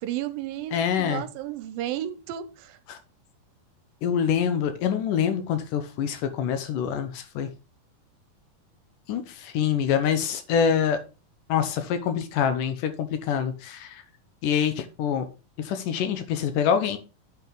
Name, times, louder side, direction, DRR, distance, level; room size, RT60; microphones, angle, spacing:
voice 1, 0.0-2.8, right 12 dB, 85° right, 2.4 m, -33 dB
voice 2, 0.7-1.2 2.9-3.0 4.0-7.5 9.1-11.0 11.5-14.0 14.4-15.3 15.6-17.0, left 8 dB, 75° left, 2.3 m, -25 dB
9.3 x 5.1 x 3.8 m
omnidirectional pair, 4.2 m